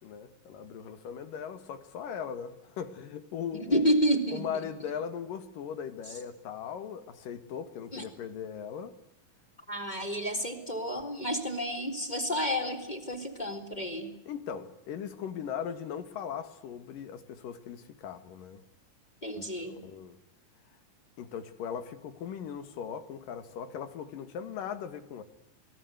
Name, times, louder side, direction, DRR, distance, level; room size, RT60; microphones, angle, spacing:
voice 1, 0.0-3.8 4.3-9.0 14.3-18.6 19.4-20.2 21.2-25.2, left 8 dB, 70° left, 3.4 m, -39 dB
voice 2, 3.5-4.4 7.9-8.0 9.7-14.1 19.2-19.8, equal, 10° left, 3.8 m, -30 dB
28.5 x 21.5 x 8.2 m
omnidirectional pair, 4.0 m